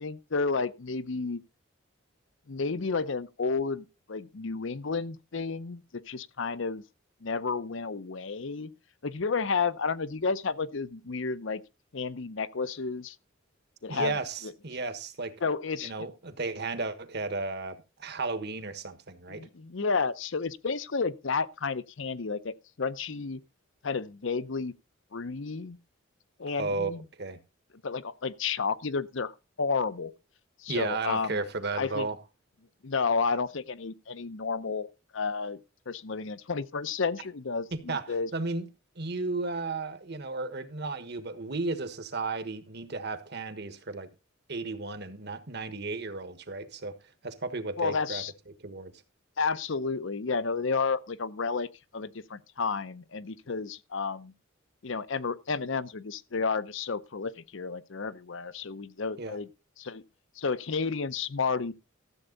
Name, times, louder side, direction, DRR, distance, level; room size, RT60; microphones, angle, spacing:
voice 1, 0.0-1.4 2.5-6.8 7.2-8.7 9.0-11.6 11.9-13.2 13.8-14.2 14.4-14.5 15.4-15.9 19.3-23.4 23.8-24.7 25.1-25.8 26.4-27.0 27.8-29.3 29.6-30.1 30.6-31.4 31.8-32.1 32.8-35.6 35.9-38.3 47.8-48.3 49.4-51.7 51.9-54.3 54.8-59.5 59.8-60.0 60.4-61.7, left 4 dB, 65° left, 0.7 m, -31 dB
voice 2, 13.9-15.3 15.8-19.5 26.5-27.4 30.7-32.2 37.7-38.0 38.3-38.7 39.0-44.1 44.5-46.9 47.2-48.2 48.6-48.9 59.2-59.4, right 3 dB, 55° right, 1.4 m, -34 dB
13.5 x 8.0 x 3.9 m
head